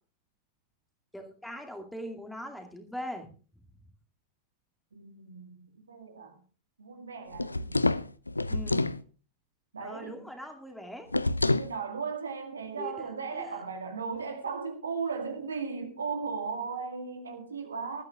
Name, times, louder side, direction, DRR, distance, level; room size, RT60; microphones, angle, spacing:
voice 1, 1.1-3.3 3.5-3.6 8.5-8.9 9.8-11.1 12.8-13.1 13.4-13.6, left 1 dB, 5° left, 2.4 m, -41 dB
voice 2, 4.9-6.4 6.8-7.8 9.7-10.3 11.4-18.0, right 5 dB, 70° right, 2.0 m, -36 dB
sound 1, 7.3-9.0 11.1-11.7, left 2 dB, 80° left, 0.5 m, -27 dB
20.5 x 13.0 x 2.4 m
figure-of-eight pair, 90°, 0 cm